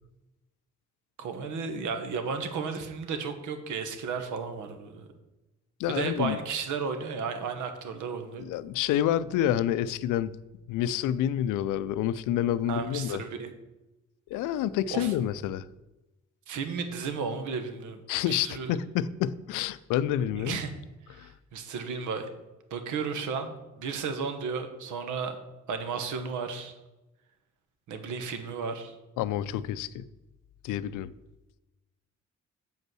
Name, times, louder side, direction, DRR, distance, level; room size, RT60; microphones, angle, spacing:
voice 1, 1.2-5.0 5.9-8.5 12.7-13.5 14.9-15.1 16.5-18.0 18.3-18.8 20.3-20.7 21.1-22.2 22.7-25.4 25.7-26.7 27.9-28.9, right 5 dB, 80° right, 8 dB, 1.3 m, -33 dB
voice 2, 5.8-6.4 8.4-10.4 10.7-13.2 14.3-15.7 18.1-20.6 21.2-21.3 29.2-30.1 30.6-31.1, left 11 dB, 90° left, 16 dB, 0.5 m, -28 dB
7.3 x 5.4 x 6.2 m, 1.0 s
cardioid pair, 90°, 30 cm